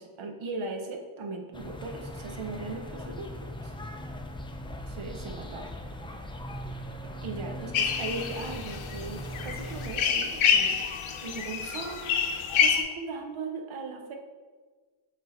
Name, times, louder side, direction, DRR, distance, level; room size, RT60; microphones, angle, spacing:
voice 1, 0.0-3.3 3.6-3.7 4.9-5.7 7.2-10.8 11.2-14.1, right 3 dB, 70° right, 4 dB, 0.9 m, -38 dB
sound 1, 1.5-9.9, equal, 10° left, 0.3 m, -39 dB
sound 2, 7.7-12.8, left 7 dB, 70° left, 0.8 m, -27 dB
5.9 x 3.7 x 4.3 m, 1.4 s
wide cardioid pair, 125°, 50 cm